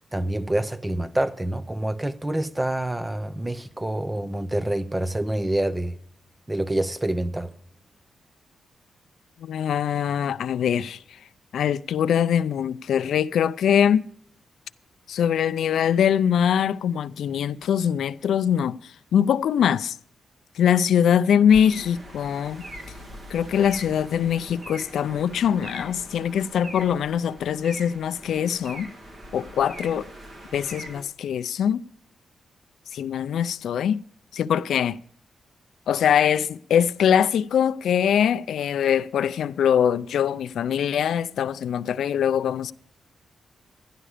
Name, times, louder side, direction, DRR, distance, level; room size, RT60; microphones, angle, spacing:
voice 1, 0.1-6.0 6.5-7.5, right 1 dB, 10° right, 0.5 m, -27 dB
voice 2, 9.4-11.0 11.5-14.1 15.1-18.8 19.1-19.9 20.6-22.6 23.3-28.9 29.3-30.1 30.5-31.8 32.9-34.0 34.3-35.0 35.9-42.7, left 8 dB, 80° left, 0.4 m, -22 dB
sound 1, 21.5-31.0, right 1 dB, 35° right, 1.5 m, -42 dB
12.0 x 11.0 x 4.9 m
wide cardioid pair, 180°, 0 cm